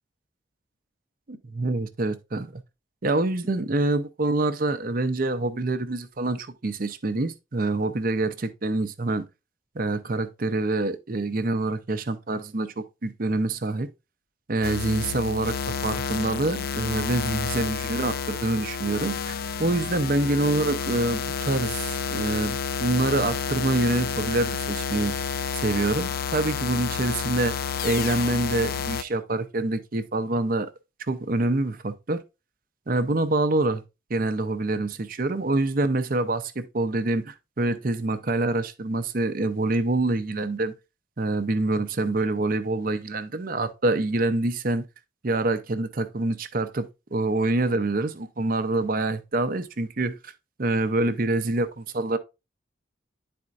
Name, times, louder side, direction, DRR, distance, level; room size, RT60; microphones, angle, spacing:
voice 1, 1.3-2.6 3.0-9.2 9.7-13.9 14.5-25.2 25.6-27.6 27.8-30.7 31.1-32.2 32.9-33.8 34.1-40.7 41.2-44.9 45.2-50.3 50.6-52.2, right 2 dB, 45° right, 0.6 m, -26 dB
sound 1, 14.6-29.0, left 6 dB, 50° left, 0.4 m, -30 dB
10.5 x 4.3 x 2.5 m
head